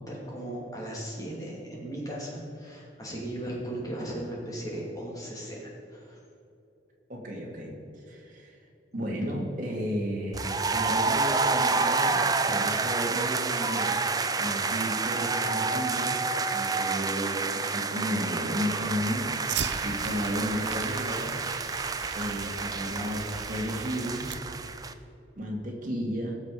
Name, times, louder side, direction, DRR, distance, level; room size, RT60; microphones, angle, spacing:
voice 1, 0.0-6.2, right 1 dB, 20° left, -4 dB, 2.7 m, -37 dB
voice 2, 7.1-7.7 8.1-8.5 8.9-14.1 14.4-16.2 16.5-21.4 22.1-24.3 25.4-26.4, equal, 45° right, -2 dB, 2.4 m, -33 dB
sound 1, 10.3-24.9, right 4 dB, 20° right, 0.4 m, -29 dB
Fire, 18.7-24.7, right 7 dB, 70° right, 0.7 m, -39 dB
18.5 x 6.9 x 5.0 m, 2.8 s
head